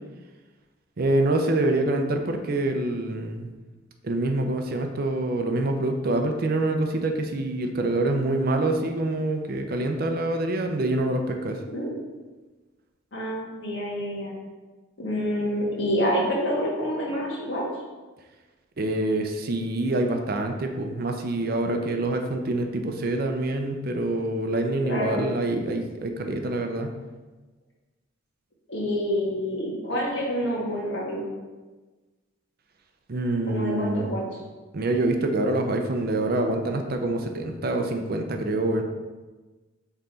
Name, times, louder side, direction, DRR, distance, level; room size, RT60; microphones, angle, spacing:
voice 1, 1.0-3.5 4.0-11.6 18.8-26.9 33.1-34.1 34.7-38.8, right 2 dB, 50° right, 4 dB, 0.6 m, -26 dB
voice 2, 13.1-14.3 15.0-17.6 24.8-25.2 28.7-31.3 33.5-34.4, equal, 65° left, -4 dB, 1.8 m, -27 dB
5.6 x 3.9 x 4.4 m, 1.3 s
head